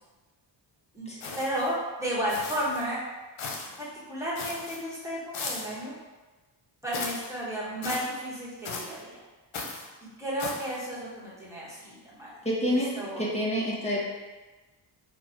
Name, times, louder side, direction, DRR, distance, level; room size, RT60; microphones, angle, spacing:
sound 1, 1.2-1.7 2.3-2.8 3.4-3.8 4.4-4.8 5.3-5.8 6.9-7.3 7.8-8.1 8.7-9.0 9.5-9.9 10.4-10.8, left 4 dB, 90° left, 0.8 m, -37 dB
voice 1, 1.4-3.0 3.8-5.9 6.8-9.2 10.2-12.3 12.7-13.2, equal, 5° right, -7 dB, 1.3 m, -33 dB
voice 2, 12.4-14.0, equal, 15° left, -5 dB, 1.0 m, -28 dB
4.0 x 2.3 x 4.4 m, 1.2 s
wide cardioid pair, 125°, 45 cm